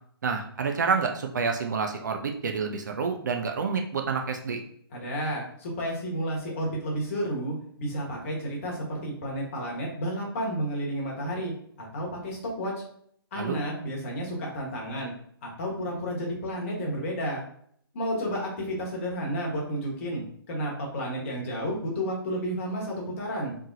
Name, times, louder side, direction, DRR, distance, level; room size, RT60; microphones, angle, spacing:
voice 1, 0.2-4.6 13.4-13.6, right 5 dB, 50° right, 4 dB, 0.5 m, -28 dB
voice 2, 4.9-11.5 11.8-12.7 13.3-15.1 15.4-17.4 17.9-23.6, equal, 35° left, -2 dB, 1.2 m, -31 dB
3.6 x 3.2 x 2.6 m, 0.64 s
figure-of-eight pair, 135°, 13 cm